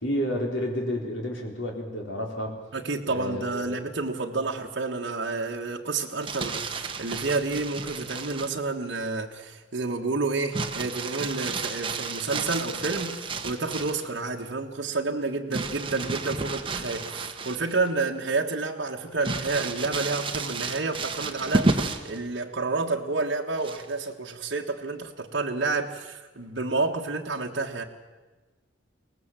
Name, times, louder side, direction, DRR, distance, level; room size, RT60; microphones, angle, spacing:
voice 1, 0.0-2.5 3.1-3.8, equal, 75° left, 1 dB, 4.4 m, -30 dB
voice 2, 2.7-27.8, right 3 dB, 60° right, 0 dB, 1.5 m, -30 dB
Crumpling crinkling, 6.0-8.6 10.5-14.1 15.5-17.9 18.3-18.4 19.2-22.2 23.6-24.1, right 3 dB, 25° right, 1.3 m, -31 dB
23.0 x 19.0 x 7.6 m, 1.2 s
head